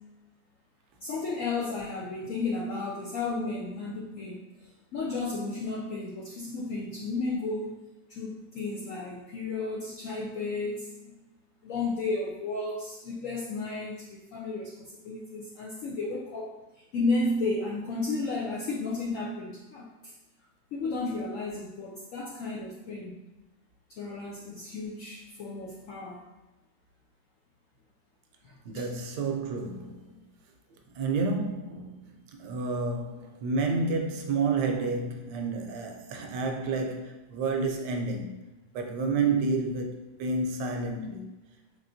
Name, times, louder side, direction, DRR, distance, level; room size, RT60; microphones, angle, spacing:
voice 1, 1.0-4.4 4.9-7.8 8.1-11.1 11.6-19.9 20.7-23.1 23.9-26.2 28.4-28.9, left 3 dB, 75° left, 0.7 m, -33 dB
voice 2, 28.6-30.2 30.9-38.4 38.7-41.3, right 3 dB, 75° right, 1.1 m, -30 dB
4.2 x 3.2 x 2.6 m
omnidirectional pair, 2.0 m